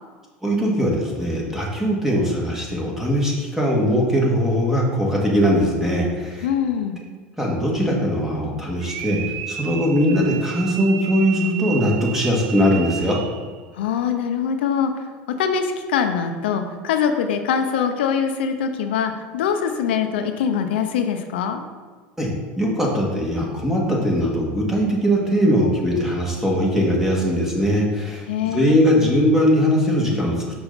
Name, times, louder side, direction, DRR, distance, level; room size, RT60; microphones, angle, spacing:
voice 1, 0.4-6.5 7.4-9.2 9.5-13.2 22.2-30.3, equal, 5° right, -2 dB, 1.9 m, -20 dB
voice 2, 6.4-7.0 13.7-14.9 15.4-21.6 28.3-28.8, left 7 dB, 85° left, 6 dB, 0.6 m, -23 dB
sound 1, 8.8-13.5, right 10 dB, 70° right, 0.5 m, -33 dB
5.9 x 5.6 x 4.0 m, 1.4 s
supercardioid pair, 95°, 6 cm